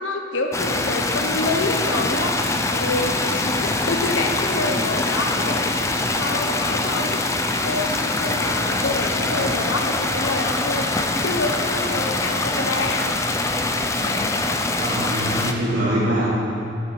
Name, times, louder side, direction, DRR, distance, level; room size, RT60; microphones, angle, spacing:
voice 1, 0.0-5.8 6.1-13.2 14.0-14.3, left 2 dB, 85° left, 4 dB, 0.8 m, -27 dB
sound 1, 0.5-15.5, left 2 dB, 15° left, 0.4 m, -23 dB
voice 2, 14.8-16.3, right 1 dB, 75° right, -11 dB, 2.6 m, -23 dB
10.5 x 9.2 x 4.6 m, 2.7 s
head